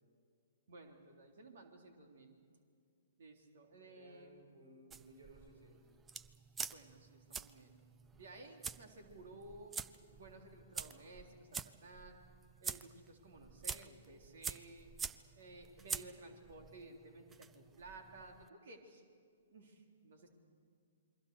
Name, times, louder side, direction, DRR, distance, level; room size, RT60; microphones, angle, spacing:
voice 1, 0.7-2.4 3.2-4.5 6.7-7.8 8.1-9.7 10.1-12.2 12.6-14.9 15.3-19.0 19.5-20.3, right 2 dB, 60° right, 3 dB, 3.6 m, -55 dB
voice 2, 3.8-5.8, right 1 dB, 80° right, 2 dB, 6.3 m, -60 dB
sound 1, 4.9-18.5, right 6 dB, 15° right, 0.6 m, -47 dB
28.0 x 22.5 x 6.7 m, 2.2 s
figure-of-eight pair, 120°, 0 cm